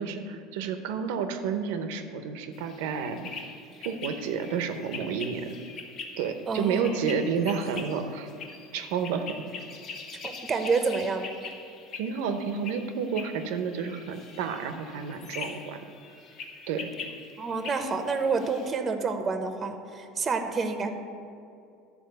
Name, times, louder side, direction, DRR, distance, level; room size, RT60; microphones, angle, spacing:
voice 1, 0.0-3.3 3.8-5.5 6.2-8.3 8.7-9.4 11.9-15.8 16.7-16.9, right 6 dB, 80° right, 8 dB, 0.8 m, -30 dB
sound 1, 2.5-18.7, left 4 dB, 45° left, 1.2 m, -43 dB
voice 2, 6.5-7.0 10.2-11.2 17.4-20.9, right 4 dB, 25° right, 7 dB, 0.8 m, -28 dB
12.5 x 4.3 x 6.7 m, 2.4 s
supercardioid pair, 130°, 0 cm